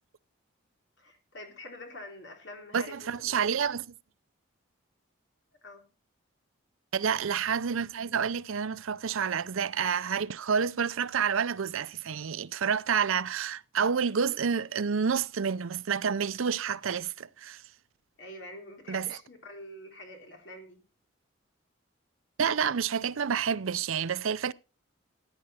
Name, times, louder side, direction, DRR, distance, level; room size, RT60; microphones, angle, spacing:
voice 1, 1.0-3.6 5.6-5.9 18.2-20.8, left 1 dB, 55° left, 3.4 m, -46 dB
voice 2, 2.7-3.9 6.9-17.6 18.9-19.2 22.4-24.5, right 6 dB, 75° right, 0.5 m, -29 dB
15.0 x 9.7 x 4.3 m
head